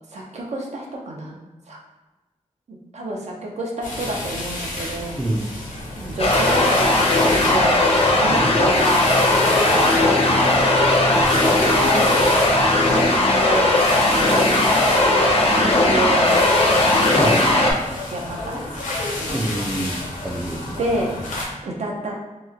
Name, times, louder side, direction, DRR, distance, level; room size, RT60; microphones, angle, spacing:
voice 1, 0.1-1.4 1.7-1.8 2.7-5.2 6.0-7.8 8.2-9.0 9.4-9.7 11.4-12.2 13.1-14.4 15.0-16.4 18.1-18.9 20.8-21.1 21.6-22.2, right 1 dB, 60° right, -1 dB, 0.6 m, -29 dB
sound 1, 3.8-21.4, left 1 dB, 80° left, 0.8 m, -30 dB
sound 2, 6.2-17.7, left 2 dB, 50° left, 0.6 m, -17 dB
voice 2, 19.3-20.8, right 1 dB, 15° right, -4 dB, 0.4 m, -26 dB
3.0 x 2.1 x 3.5 m, 1.1 s
wide cardioid pair, 140°, 13 cm